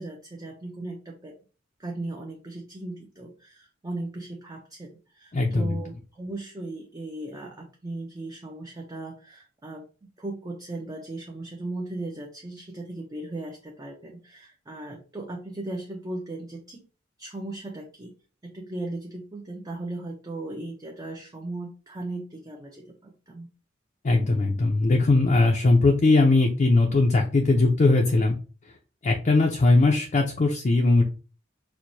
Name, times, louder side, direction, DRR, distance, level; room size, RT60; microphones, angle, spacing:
voice 1, 0.0-1.4 1.8-9.9 10.2-16.8 17.2-18.1 18.4-23.5, right 2 dB, 20° right, -1 dB, 0.5 m, -37 dB
voice 2, 5.3-5.8 24.0-28.4 29.0-31.0, left 2 dB, 40° left, 1 dB, 0.4 m, -20 dB
4.5 x 2.1 x 2.6 m, 0.35 s
head